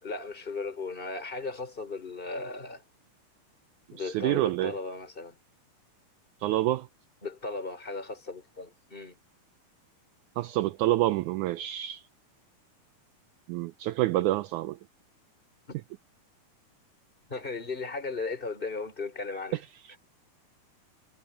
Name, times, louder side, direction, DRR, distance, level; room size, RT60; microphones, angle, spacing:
voice 1, 0.0-2.8 3.9-5.3 7.2-9.2 15.7-15.8 17.3-19.6, left 3 dB, 15° left, 4.6 m, -36 dB
voice 2, 4.0-4.7 6.4-6.9 10.4-12.0 13.5-14.8 19.9-20.0, right 15 dB, 80° right, 1.9 m, -27 dB
omnidirectional pair, 3.8 m